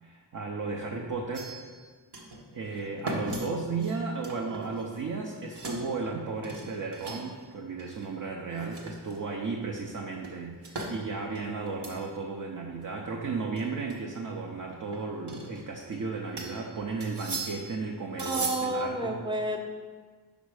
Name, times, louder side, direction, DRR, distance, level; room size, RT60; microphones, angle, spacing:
voice 1, 0.0-1.5 2.5-19.2, right 4 dB, 50° right, 0 dB, 0.6 m, -34 dB
sound 1, 1.3-1.8 2.1-2.4 2.7-5.1 5.4-5.9 6.4-7.4 7.8-8.1 8.5-9.4 10.2-10.9 11.3-12.0 12.4-12.5 12.8-12.9 13.6-13.9 14.9-16.0 16.4-16.6 17.0-17.8 18.2-18.8, right 2 dB, 75° right, 1.1 m, -38 dB
voice 2, 18.1-19.6, right 1 dB, 10° right, 2 dB, 0.7 m, -30 dB
5.3 x 5.1 x 4.8 m, 1.5 s
wide cardioid pair, 100°, 41 cm